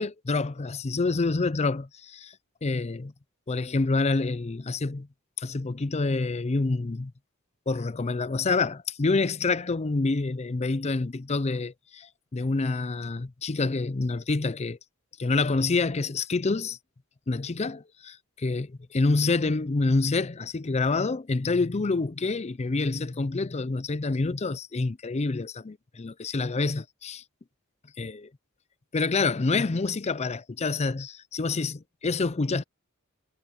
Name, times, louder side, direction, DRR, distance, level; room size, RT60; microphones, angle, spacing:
voice 1, 0.0-2.4 2.6-3.1 3.5-5.1 5.4-7.1 7.7-14.8 15.2-16.8 17.3-27.2 28.0-28.3 28.9-32.6, left 3 dB, 30° left, 0.5 m, -27 dB
head